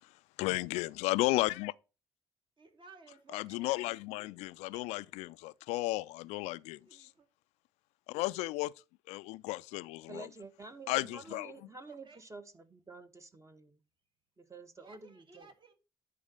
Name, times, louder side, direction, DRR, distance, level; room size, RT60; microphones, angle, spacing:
voice 1, 0.4-1.7 3.3-7.1 8.1-8.7 9.1-10.3 10.9-11.5, left 20 dB, 65° left, 0.4 m, -34 dB
voice 2, 2.6-4.0 4.6-4.8 6.9-7.3 9.7-10.1 11.9-12.2 14.8-15.7, right 4 dB, 40° right, 1.8 m, -58 dB
voice 3, 10.1-13.8 14.4-15.5, right 3 dB, 25° right, 1.2 m, -49 dB
10.0 x 4.0 x 6.2 m
figure-of-eight pair, 45°, 12 cm